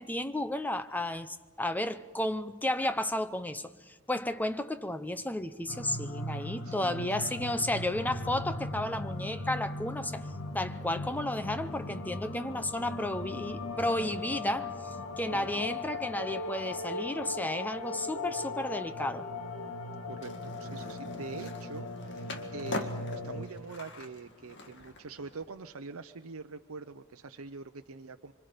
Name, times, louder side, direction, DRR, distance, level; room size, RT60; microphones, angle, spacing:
voice 1, 0.0-10.2 10.5-14.7 15.2-19.3, left 1 dB, 10° left, 0.7 m, -33 dB
sound 1, 5.7-23.4, left 2 dB, 80° left, 1.9 m, -38 dB
voice 2, 6.6-7.7 15.3-15.8 20.0-28.3, right 4 dB, 85° right, 0.7 m, -45 dB
Skateboard, 20.2-25.4, left 2 dB, 55° left, 2.0 m, -43 dB
25.5 x 25.0 x 5.1 m
head